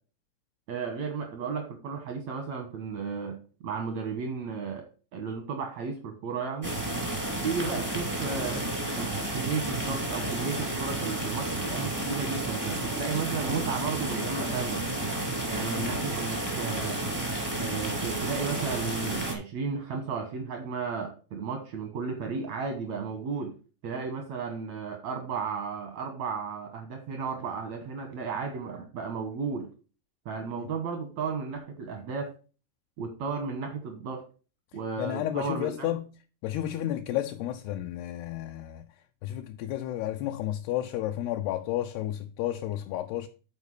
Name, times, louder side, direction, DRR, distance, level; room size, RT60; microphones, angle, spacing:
voice 1, 0.7-3.4 3.6-4.8 5.1-6.8 7.4-8.6 9.0-14.9 15.5-17.0 17.5-23.5 23.8-29.7 30.2-32.3 33.0-34.2 34.7-35.9, right 5 dB, 85° right, 1.5 m, -34 dB
sound 1, 6.6-19.3, right 1 dB, 20° right, 0.5 m, -31 dB
voice 2, 35.0-36.1 36.4-38.9 39.2-43.3, left 13 dB, 80° left, 2.4 m, -32 dB
10.5 x 4.5 x 4.7 m
omnidirectional pair, 5.0 m